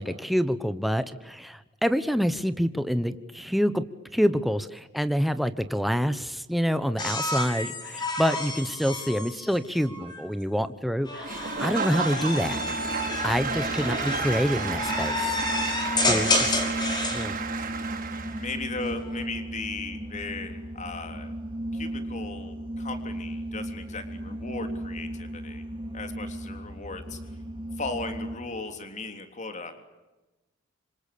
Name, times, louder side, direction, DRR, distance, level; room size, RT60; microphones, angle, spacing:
voice 1, 0.0-3.8 4.1-12.6 13.2-15.4 16.1-16.6 17.1-17.3, equal, ahead, 11 dB, 1.1 m, -27 dB
sound 1, 7.0-10.2 11.0-17.3 18.7-19.2, left 2 dB, 20° left, 5.9 m, -30 dB
Applause / Crowd, 11.2-18.6, right 5 dB, 45° right, 5.4 m, -32 dB
voice 2, 11.9-12.3 16.4-16.7 18.4-21.3 21.7-25.6 25.9-27.2 27.8-29.7, left 3 dB, 40° left, 7 dB, 3.4 m, -37 dB
sound 2, 12.5-28.4, right 1 dB, 25° right, 3.3 m, -36 dB
26.5 x 26.5 x 8.6 m, 1.1 s
head